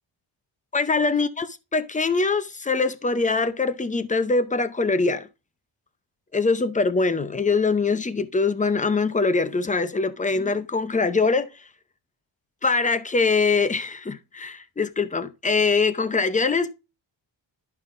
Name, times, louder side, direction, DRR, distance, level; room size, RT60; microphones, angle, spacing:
voice 1, 0.7-5.3 6.3-11.5 12.6-16.7, left 4 dB, 15° left, 0.6 m, -23 dB
11.0 x 5.6 x 2.6 m
cardioid pair, 110°, 46 cm